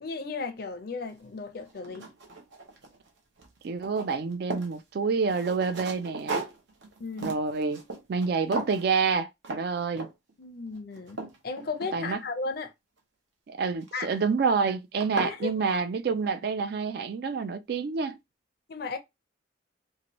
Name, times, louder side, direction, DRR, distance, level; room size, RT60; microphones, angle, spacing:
voice 1, 0.0-2.1 7.0-7.3 10.4-12.7 13.9-14.1 15.2-15.8 18.7-19.0, left 4 dB, 55° left, 0.5 m, -35 dB
sound 1, 1.1-1.2 1.7-3.1 3.4-4.8 5.3-8.3 8.5-8.9 9.4-9.6 10.0-10.3 10.7-12.3 13.8-14.2 14.7-14.8 15.0-15.4, right 3 dB, 75° right, 0.8 m, -37 dB
voice 2, 3.6-6.4 7.2-7.8 8.1-10.1 11.9-12.2 13.5-18.2, right 5 dB, 55° right, 0.3 m, -28 dB
2.7 x 2.5 x 3.0 m
head